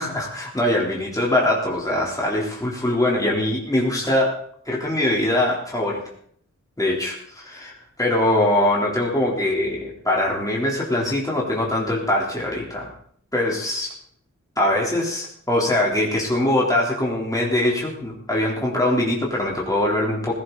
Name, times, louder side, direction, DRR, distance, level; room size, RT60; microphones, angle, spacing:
voice 1, 0.0-4.4 4.7-6.0 6.8-12.9 13.3-14.0 14.6-20.3, left 1 dB, 10° left, -4 dB, 3.7 m, -22 dB
17.0 x 16.0 x 4.1 m, 0.62 s
wide cardioid pair, 85°, 30 cm